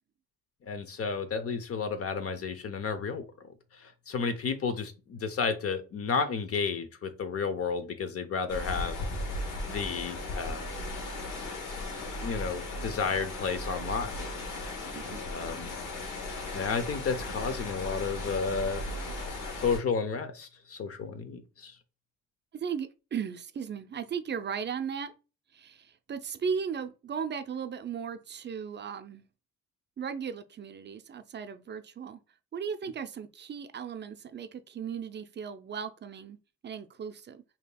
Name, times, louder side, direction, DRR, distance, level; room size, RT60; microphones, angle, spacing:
voice 1, 0.7-3.2 3.7-9.0 9.7-10.7 12.2-14.1 15.1-15.7 16.5-18.8 19.6-21.7, left 5 dB, 50° left, 0.8 m, -32 dB
sound 1, 8.5-19.8, left 2 dB, 85° left, 1.1 m, -36 dB
voice 2, 14.9-15.3 22.5-25.1 25.5-29.2 30.0-32.2 32.5-36.4 36.6-37.4, right 7 dB, 35° right, 0.5 m, -36 dB
5.0 x 2.8 x 2.2 m
cardioid pair, 90°, 30 cm